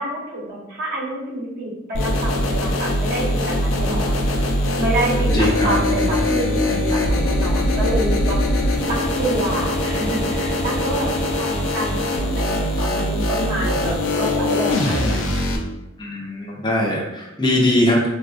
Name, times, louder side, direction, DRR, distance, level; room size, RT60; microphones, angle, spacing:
voice 1, 0.0-4.1 4.8-8.4 8.9-15.4, right 1 dB, 50° right, -5 dB, 1.0 m, -27 dB
sound 1, 1.9-15.6, left 1 dB, 80° left, 0.5 m, -21 dB
voice 2, 5.3-5.8 8.6-8.7 16.0-18.1, left 1 dB, 25° left, -2 dB, 0.5 m, -21 dB
3.4 x 2.4 x 2.3 m, 0.98 s
head